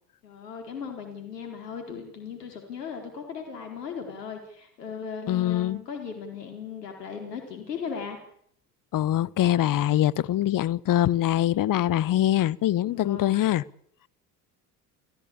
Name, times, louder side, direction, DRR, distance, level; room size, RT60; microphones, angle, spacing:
voice 1, 0.2-8.2 12.8-13.5, left 6 dB, 85° left, 4.5 m, -37 dB
voice 2, 5.3-5.8 8.9-13.6, left 13 dB, 45° left, 1.1 m, -23 dB
29.5 x 15.5 x 8.7 m
hypercardioid pair, 65°, 47 cm